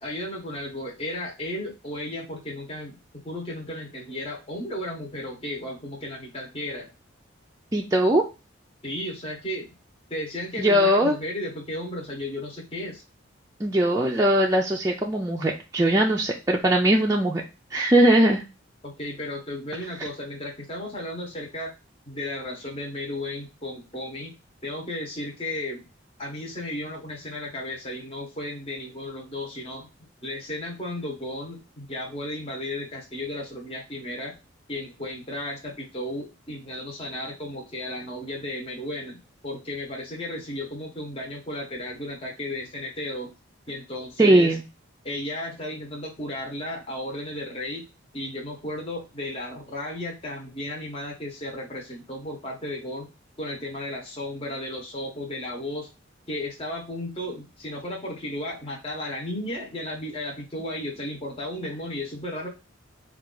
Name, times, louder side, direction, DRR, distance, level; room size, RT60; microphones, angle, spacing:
voice 1, 0.0-3.0 3.2-6.9 8.8-9.7 10.1-13.0 18.8-21.7 22.1-24.3 24.6-25.8 26.2-29.9 30.2-34.3 34.7-43.3 43.7-44.6 45.0-47.8 48.1-53.1 53.4-55.9 56.3-62.5, left 1 dB, 30° left, -1 dB, 1.0 m, -34 dB
voice 2, 7.7-8.2 10.6-11.1 13.6-17.4 17.7-18.4 44.2-44.6, right 1 dB, 15° right, -2 dB, 0.4 m, -20 dB
4.7 x 2.4 x 3.7 m, 0.28 s
head